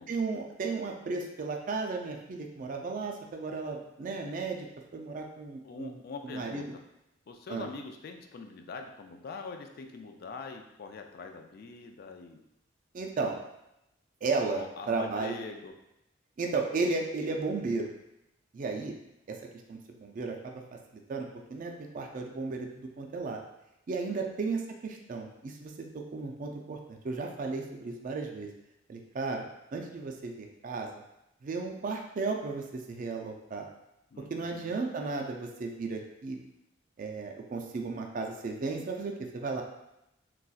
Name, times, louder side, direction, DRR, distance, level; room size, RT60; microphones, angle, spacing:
voice 1, 0.1-4.7 4.9-6.7 7.5-7.7 12.9-13.4 14.2-15.4 16.4-17.9 18.5-18.9 19.3-19.4 19.7-20.6 21.1-23.4 23.9-28.5 28.9-29.4 29.7-30.9 31.4-33.7 34.3-36.4 37.0-39.6, right 3 dB, 45° right, 2 dB, 0.4 m, -34 dB
voice 2, 5.6-6.6 7.3-12.4 14.5-15.7 24.1-24.2 34.1-34.8, left 4 dB, 55° left, 4 dB, 0.3 m, -43 dB
4.0 x 2.3 x 2.3 m, 0.85 s
head